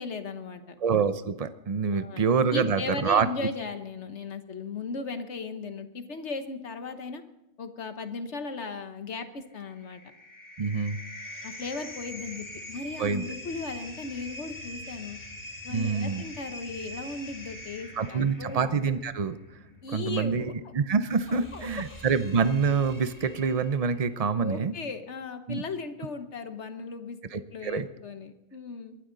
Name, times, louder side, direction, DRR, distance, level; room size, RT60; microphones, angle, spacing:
voice 1, 0.0-0.7 1.9-7.2 7.6-10.0 11.4-15.2 15.6-18.6 19.8-20.5 21.3-21.7 24.4-29.0, left 4 dB, 50° left, 8 dB, 1.2 m, -37 dB
voice 2, 0.8-3.3 10.6-11.0 13.0-13.2 15.7-16.2 18.0-19.4 19.9-24.7 25.5-25.6 27.3-27.9, right 5 dB, 55° right, 12 dB, 0.4 m, -26 dB
sound 1, 9.4-24.0, left 1 dB, 10° left, 1.9 m, -44 dB
22.5 x 12.5 x 3.9 m, 0.86 s
omnidirectional pair, 1.6 m